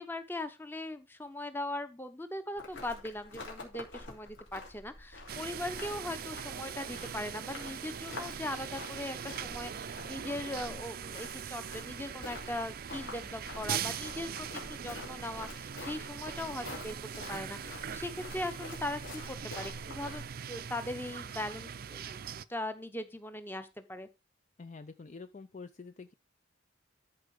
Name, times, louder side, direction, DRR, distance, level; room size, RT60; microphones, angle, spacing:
voice 1, 0.0-22.2 22.5-24.1, left 1 dB, 10° left, 0.9 m, -40 dB
sound 1, 2.6-20.3, left 2 dB, 60° left, 3.4 m, -48 dB
sound 2, 5.3-22.4, right 8 dB, 45° right, 0.5 m, -41 dB
voice 2, 24.6-26.1, left 4 dB, 35° left, 0.4 m, -47 dB
13.0 x 4.5 x 4.9 m
head